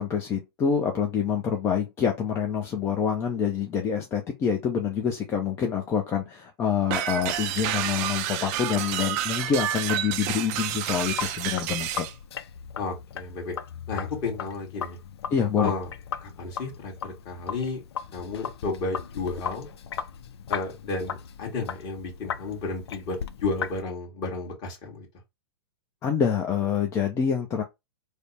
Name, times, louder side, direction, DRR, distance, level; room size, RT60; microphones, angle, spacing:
voice 1, 0.0-12.1 15.3-15.7 26.0-27.6, left 7 dB, 20° left, 0.5 m, -26 dB
sound 1, 6.9-12.1, right 12 dB, 40° right, 0.4 m, -29 dB
Sink (filling or washing), 10.9-23.8, left 7 dB, 85° left, 0.4 m, -37 dB
voice 2, 12.8-13.6 13.9-15.0 15.6-15.9 16.2-17.8 18.1-19.7 20.5-25.1, left 3 dB, 35° left, 1.5 m, -32 dB
3.3 x 2.1 x 4.1 m
hypercardioid pair, 140°, 13 cm